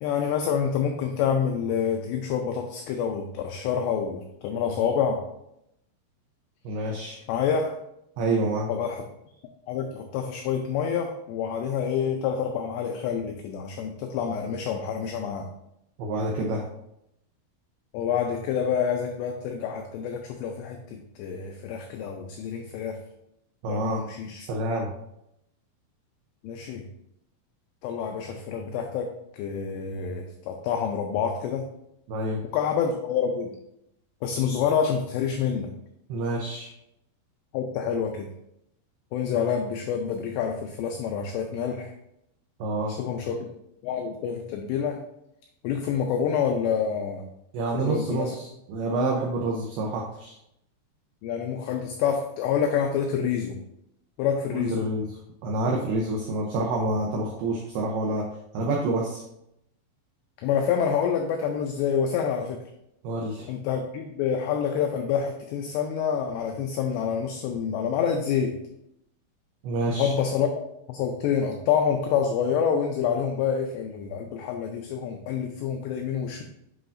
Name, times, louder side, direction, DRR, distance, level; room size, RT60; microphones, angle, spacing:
voice 1, 0.0-5.2 7.3-7.8 8.7-9.0 9.7-15.5 17.9-23.0 23.7-24.5 26.4-26.8 27.8-31.7 32.5-33.6 34.2-35.7 37.5-38.3 39.1-41.9 42.9-43.5 43.8-45.0 45.6-47.3 47.7-48.4 51.2-53.6 54.2-54.9 60.4-62.6 63.5-68.6 70.0-70.5 70.9-76.4, left 7 dB, 90° left, 4 dB, 2.4 m, -27 dB
voice 2, 6.6-7.2 8.2-8.7 16.0-16.7 23.6-24.0 24.5-24.9 32.1-32.4 36.1-36.7 42.6-43.0 47.5-50.4 54.5-55.1 55.4-58.3 58.5-59.2 63.0-63.5 69.6-70.2, right 2 dB, 85° right, -1 dB, 2.2 m, -28 dB
7.9 x 5.6 x 2.5 m, 0.80 s
omnidirectional pair, 5.5 m